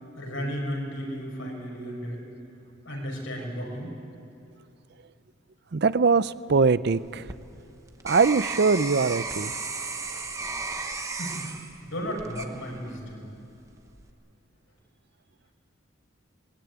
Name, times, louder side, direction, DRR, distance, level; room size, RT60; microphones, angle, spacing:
voice 1, 0.2-2.2 2.8-3.9 11.2-11.5 11.8-13.3, equal, 75° left, 0 dB, 6.1 m, -34 dB
voice 2, 5.7-7.3 8.0-9.5, right 4 dB, 50° right, 16 dB, 0.5 m, -22 dB
sound 1, 6.9-13.1 13.6-14.1, right 3 dB, 15° right, 1.0 m, -35 dB
20.5 x 20.5 x 9.5 m, 2.7 s
head